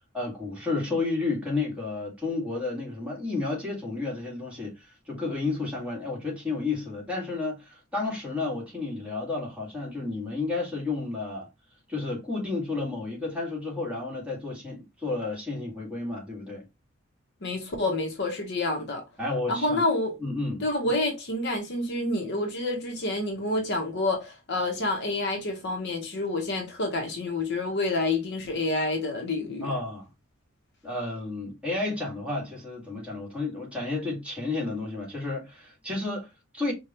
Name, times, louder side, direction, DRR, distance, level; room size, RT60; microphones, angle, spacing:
voice 1, 0.1-11.5 11.9-16.6 19.2-19.8 20.2-20.9 29.6-30.1 30.8-36.7, left 3 dB, 5° right, 1.7 m, -31 dB
voice 2, 17.4-19.0 19.5-20.2 20.6-29.7, left 2 dB, 55° left, 0.9 m, -28 dB
5.0 x 2.3 x 2.8 m
head